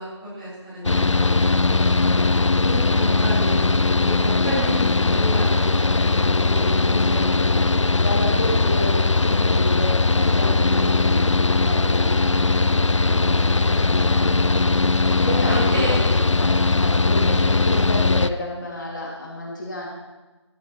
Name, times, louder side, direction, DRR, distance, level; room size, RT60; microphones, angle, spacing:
voice 1, 0.0-1.6 1.9-7.4 13.1-13.7 15.4-16.0, equal, 15° right, -10 dB, 4.3 m, -31 dB
Mechanical fan, 0.8-18.3, left 3 dB, 75° left, 0.6 m, -19 dB
voice 2, 1.1-1.5 8.0-12.5 13.6-14.6 15.1-19.9, left 1 dB, 40° left, -3 dB, 2.6 m, -31 dB
16.5 x 12.5 x 3.2 m, 1.2 s
figure-of-eight pair, 165°, 16 cm